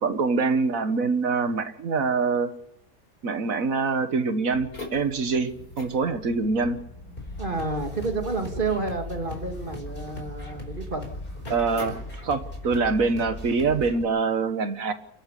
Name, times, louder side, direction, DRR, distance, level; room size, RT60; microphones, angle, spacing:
voice 1, 0.0-2.5 3.2-6.8 11.5-14.9, right 4 dB, 65° right, 10 dB, 1.8 m, -25 dB
sound 1, 4.5-12.8, left 1 dB, 80° left, 4.7 m, -43 dB
sound 2, 7.2-14.0, left 1 dB, 35° left, 4.8 m, -38 dB
voice 2, 7.4-11.0, right 3 dB, 35° right, 4 dB, 2.5 m, -30 dB
29.0 x 11.5 x 8.3 m, 0.77 s
omnidirectional pair, 1.5 m